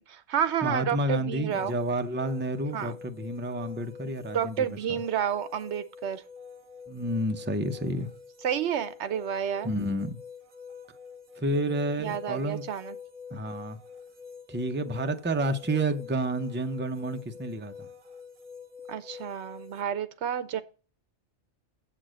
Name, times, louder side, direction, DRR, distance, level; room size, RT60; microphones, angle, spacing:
voice 1, 0.0-1.7 2.7-3.0 4.3-6.2 8.4-9.7 12.0-13.0 18.9-20.6, right 9 dB, 75° right, 1.1 m, -30 dB
voice 2, 0.6-5.0 6.9-8.1 9.6-10.2 11.4-12.6 13.3-13.8 14.5-17.9, right 1 dB, 15° right, 0.5 m, -30 dB
sound 1, 1.5-19.8, left 6 dB, 50° right, 1.1 m, -46 dB
7.5 x 6.7 x 6.3 m
omnidirectional pair, 1.2 m